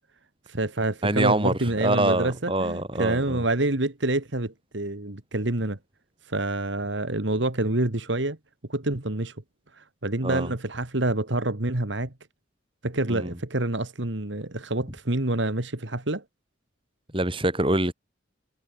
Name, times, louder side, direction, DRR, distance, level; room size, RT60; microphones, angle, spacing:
voice 1, 0.5-5.8 6.3-8.4 8.7-9.3 9.8-12.1 12.8-16.2, right 2 dB, 70° right, 2.1 m, -27 dB
voice 2, 1.0-3.4 10.2-10.5 13.1-13.4 17.1-17.9, right 1 dB, 25° right, 5.7 m, -25 dB
head